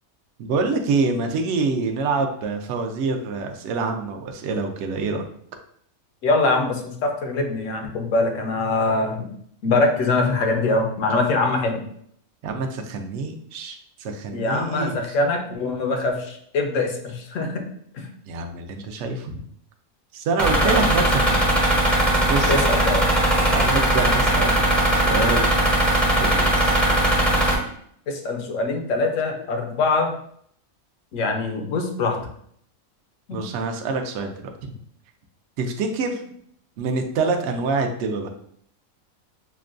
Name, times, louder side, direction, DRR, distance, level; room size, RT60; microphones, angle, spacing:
voice 1, 0.4-5.3 12.4-15.0 18.3-19.4 20.1-21.8 22.3-22.7 23.5-24.6 24.9-25.5 26.2-26.8 33.3-34.8 35.6-36.2 36.8-38.3, right 4 dB, 65° right, 4 dB, 0.8 m, -26 dB
voice 2, 6.2-9.3 9.6-11.8 14.3-17.6 17.9-18.1 20.6-20.8 22.5-23.0 28.1-30.1 31.1-32.2 33.3-33.4, left 3 dB, 70° left, 4 dB, 1.0 m, -23 dB
sound 1, 20.4-27.5, right 1 dB, ahead, 0.5 m, -19 dB
5.8 x 2.2 x 2.5 m, 0.66 s
omnidirectional pair, 1.5 m